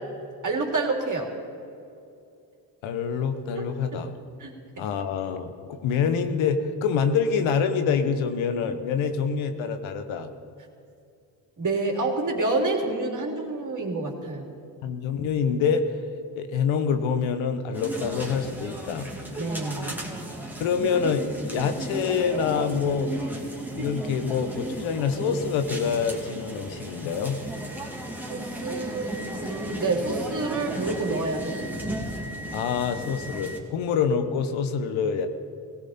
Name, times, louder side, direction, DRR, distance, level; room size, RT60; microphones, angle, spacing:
voice 1, 0.4-1.3 3.6-4.0 4.4-4.8 11.6-14.5 19.3-20.1 28.3-29.1 29.4-31.6, right 3 dB, 40° right, 1 dB, 3.3 m, -28 dB
voice 2, 2.8-4.2 4.8-10.3 14.8-15.9 16.4-19.1 20.6-23.1 23.8-27.4 32.5-35.3, left 6 dB, 85° left, 8 dB, 1.3 m, -26 dB
sound 1, 17.7-33.6, right 1 dB, 5° right, 2.7 m, -35 dB
17.5 x 17.0 x 4.4 m, 2.5 s
supercardioid pair, 70°, 46 cm